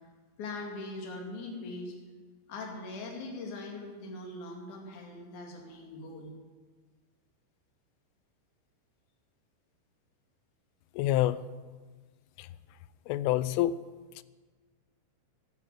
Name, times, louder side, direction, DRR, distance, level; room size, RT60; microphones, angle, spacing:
voice 1, 0.4-1.9 2.5-6.3, left 2 dB, 45° left, 0 dB, 3.3 m, -41 dB
voice 2, 11.0-11.4 12.4-12.5 13.1-13.8, left 14 dB, 90° left, 17 dB, 3.1 m, -27 dB
12.5 x 12.0 x 7.8 m, 1.4 s
omnidirectional pair, 5.5 m